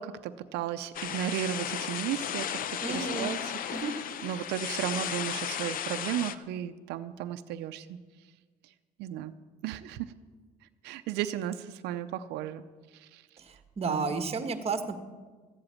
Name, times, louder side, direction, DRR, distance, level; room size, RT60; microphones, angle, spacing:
voice 1, 0.0-3.9 4.2-8.0 9.0-9.3 9.6-10.1 10.8-12.6 12.9-13.2 13.9-14.1, right 11 dB, 85° right, 10 dB, 0.6 m, -35 dB
sound 1, 0.9-6.3, left 9 dB, 55° left, 0.7 m, -35 dB
voice 2, 2.8-3.3 3.7-3.9 13.4-15.0, right 4 dB, 35° right, 8 dB, 1.4 m, -32 dB
14.5 x 7.8 x 8.6 m, 1.4 s
cardioid pair, 110°, 17 cm